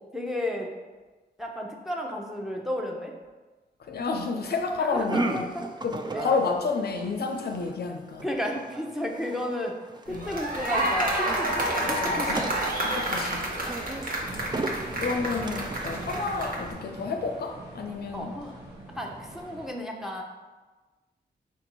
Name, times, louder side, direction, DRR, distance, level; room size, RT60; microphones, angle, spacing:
voice 1, 0.1-0.7 1.4-3.1 4.8-5.7 6.1-6.3 8.2-9.7 10.1-12.5 18.1-18.5 18.9-20.2, left 1 dB, ahead, 0 dB, 0.8 m, -33 dB
voice 2, 3.8-5.5 5.8-8.3 10.1-10.3 11.8-12.4 12.8-13.4 15.0-18.3, left 4 dB, 65° left, 4 dB, 0.5 m, -30 dB
sound 1, 4.9-16.9, right 2 dB, 25° right, 0.4 m, -36 dB
sound 2, 10.1-16.7, right 1 dB, 50° right, 1.0 m, -29 dB
sound 3, 14.2-19.7, right 1 dB, 75° right, 1.2 m, -42 dB
4.5 x 2.6 x 4.4 m, 1.3 s
cardioid pair, 55°, 18 cm